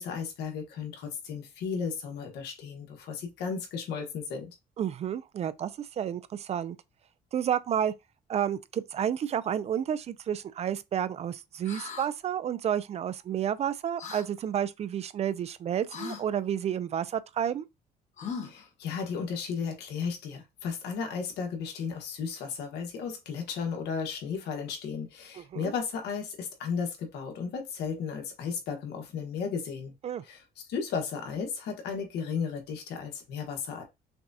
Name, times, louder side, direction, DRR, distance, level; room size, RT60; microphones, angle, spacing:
voice 1, 0.0-4.5 18.4-29.9 30.2-33.8, left 6 dB, 80° left, 1.3 m, -34 dB
voice 2, 4.8-6.8 7.3-7.9 8.3-17.7 25.4-25.7 30.0-30.2, right 9 dB, 40° right, 0.4 m, -31 dB
sound 1, 11.6-12.1 14.0-14.3 15.9-16.2 18.2-18.7, left 6 dB, 45° left, 1.1 m, -38 dB
5.9 x 2.3 x 2.7 m
cardioid pair, 110°, 17 cm